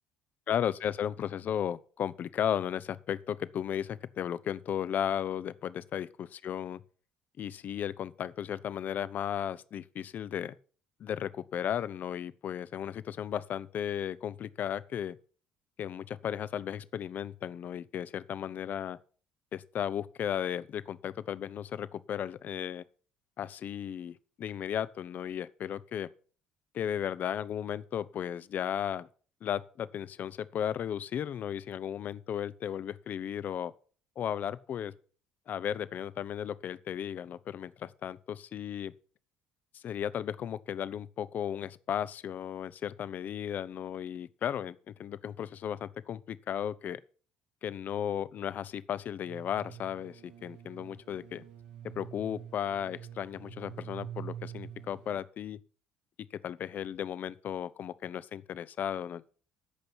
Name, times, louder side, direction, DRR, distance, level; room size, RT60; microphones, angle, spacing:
voice 1, 0.5-6.8 7.4-10.5 11.0-15.2 15.8-19.0 19.5-22.8 23.4-26.1 26.7-29.1 29.4-33.7 34.2-34.9 35.5-38.9 39.7-47.0 47.6-51.4 52.0-55.6 56.4-59.3, left 9 dB, 50° left, 0.7 m, -35 dB
sound 1, 49.2-55.2, right 10 dB, 80° right, 2.3 m, -46 dB
13.5 x 5.4 x 6.1 m
hypercardioid pair, 60°, 4 cm